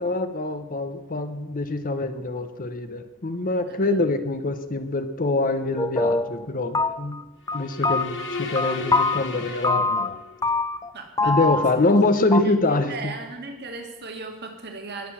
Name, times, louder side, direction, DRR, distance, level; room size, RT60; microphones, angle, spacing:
voice 1, 0.0-7.3 7.5-10.1 11.2-13.1, left 2 dB, 40° left, 10 dB, 1.0 m, -25 dB
sound 1, 5.8-6.5 6.7-7.2 7.5-9.2 9.6-10.2 10.4-10.9 11.2-12.0 12.3-12.4, left 3 dB, 15° left, 0.6 m, -24 dB
sound 2, 7.5-10.5, left 3 dB, 55° left, 2.3 m, -35 dB
voice 2, 10.9-11.9 12.2-15.1, right 3 dB, 50° right, 4 dB, 2.2 m, -38 dB
20.0 x 6.8 x 7.3 m, 1.1 s
head